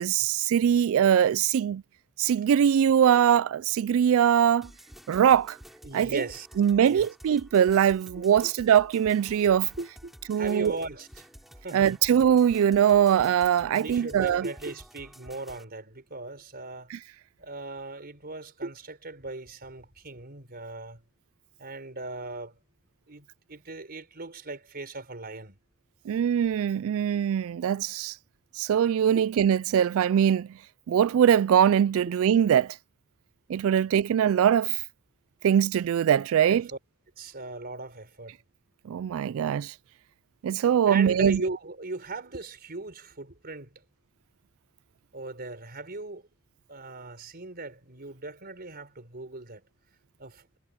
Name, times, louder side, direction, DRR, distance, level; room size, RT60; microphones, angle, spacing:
voice 1, 0.0-1.8 2.2-4.7 5.1-5.6 5.9-6.2 6.6-9.7 10.3-10.7 11.7-14.4 16.9-17.0 26.1-28.2 28.5-30.5 30.9-32.8 33.5-34.8 35.4-36.7 38.9-39.7 40.4-41.4, right 9 dB, 65° right, 0.3 m, -22 dB
sound 1, 4.6-15.6, equal, ahead, 4.6 m, -50 dB
voice 2, 5.8-6.5 6.9-7.1 8.2-8.5 9.8-11.3 11.6-12.0 13.7-16.9 17.4-21.0 21.6-22.6 23.1-25.6 29.1-29.2 36.4-36.8 37.2-38.4 40.9-43.8 45.1-46.3 46.7-49.6 50.2-50.5, right 2 dB, 45° right, 4.4 m, -38 dB
head